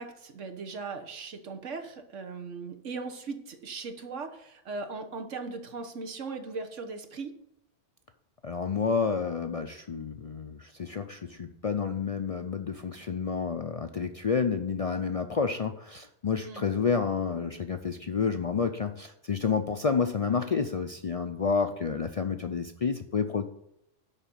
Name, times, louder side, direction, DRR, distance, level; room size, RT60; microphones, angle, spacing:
voice 1, 0.0-7.3 16.4-16.6, right 4 dB, 90° right, 6 dB, 1.5 m, -38 dB
voice 2, 8.4-23.5, left 5 dB, 55° left, 7 dB, 0.4 m, -29 dB
11.0 x 4.1 x 7.4 m, 0.79 s
omnidirectional pair, 1.2 m